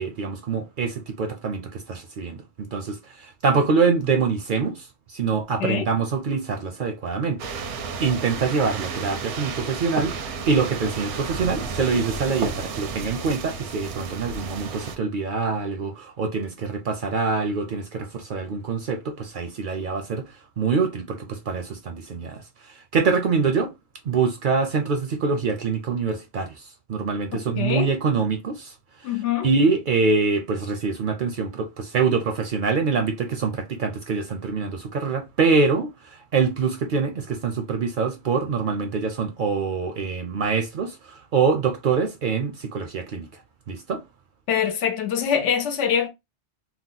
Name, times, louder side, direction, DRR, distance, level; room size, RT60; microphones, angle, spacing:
voice 1, 0.0-20.3 20.6-23.7 24.0-28.7 29.4-43.4 43.7-44.0, right 5 dB, 60° right, 0.6 m, -25 dB
sound 1, 7.4-15.0, right 5 dB, 80° right, 0.9 m, -32 dB
voice 2, 27.6-27.9 29.0-29.5 44.5-46.1, left 8 dB, 80° left, 1.0 m, -24 dB
2.9 x 2.0 x 3.7 m
omnidirectional pair, 1.2 m